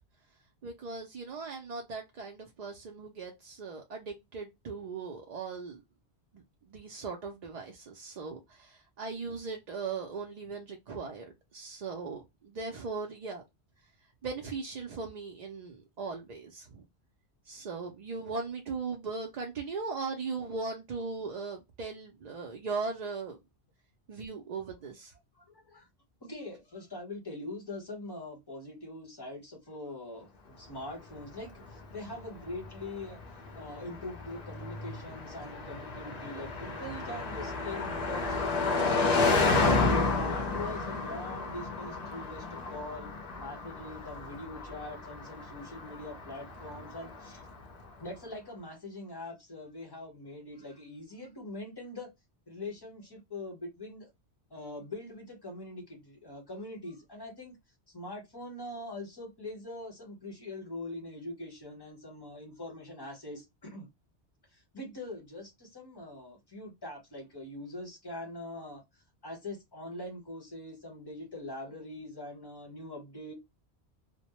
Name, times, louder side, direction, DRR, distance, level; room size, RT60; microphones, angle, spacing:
voice 1, 0.6-5.8 6.3-13.4 14.2-16.8 17.5-23.4 24.1-25.1, right 4 dB, 55° right, 0.5 m, -38 dB
voice 2, 25.3-25.9 26.2-33.2 33.5-43.1 43.4-47.4 48.0-52.1 52.5-54.1 54.5-57.6 57.9-63.9 64.5-68.8 69.2-73.3, left 1 dB, 25° left, 0.9 m, -43 dB
Car passing by, 31.2-47.6, left 3 dB, 50° left, 0.6 m, -32 dB
2.1 x 2.1 x 2.9 m
omnidirectional pair, 1.1 m